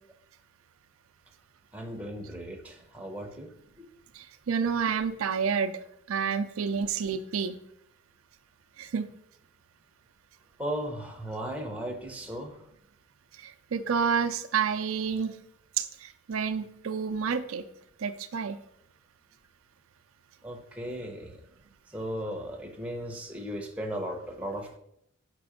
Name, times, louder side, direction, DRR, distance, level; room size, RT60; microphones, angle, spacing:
voice 1, 1.7-3.5 3.8-3.9 10.6-12.6 20.4-21.4 21.9-24.8, equal, 5° right, 1 dB, 0.8 m, -36 dB
voice 2, 4.2-5.7 6.1-7.6 8.8-9.1 13.4-15.3 15.8-17.6 18.0-18.6, right 6 dB, 80° right, 9 dB, 0.5 m, -29 dB
6.0 x 4.9 x 5.0 m, 0.75 s
head